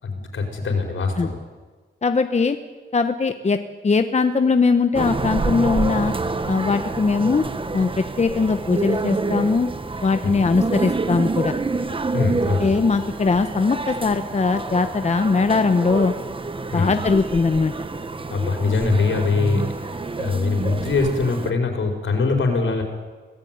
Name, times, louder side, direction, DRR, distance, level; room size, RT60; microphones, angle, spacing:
voice 1, 0.0-1.4 10.2-10.4 12.1-12.8 16.7-16.9 18.3-22.8, left 4 dB, 80° left, 2 dB, 5.4 m, -23 dB
voice 2, 2.0-2.6 2.9-3.6 3.8-6.1 6.5-7.5 7.7-9.7 10.0-11.5 12.6-16.1 16.7-17.7, left 4 dB, 35° left, 8 dB, 1.1 m, -20 dB
sound 1, 4.9-21.5, right 3 dB, 25° right, 1.2 m, -27 dB
26.5 x 18.0 x 9.5 m, 1.4 s
wide cardioid pair, 135°, 20 cm